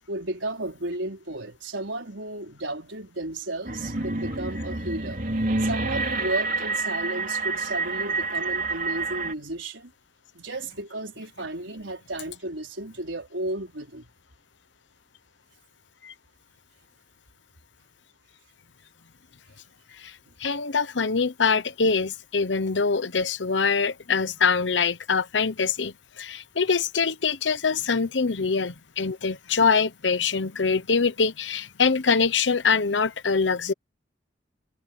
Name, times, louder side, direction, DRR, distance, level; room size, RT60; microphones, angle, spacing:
voice 1, 0.1-5.2 5.6-9.9 10.3-14.1, right 2 dB, 85° right, 4.7 m, -33 dB
sound 1, 3.7-9.3, right 3 dB, 50° right, 3.4 m, -28 dB
voice 2, 20.4-33.7, left 5 dB, 75° left, 0.9 m, -24 dB
head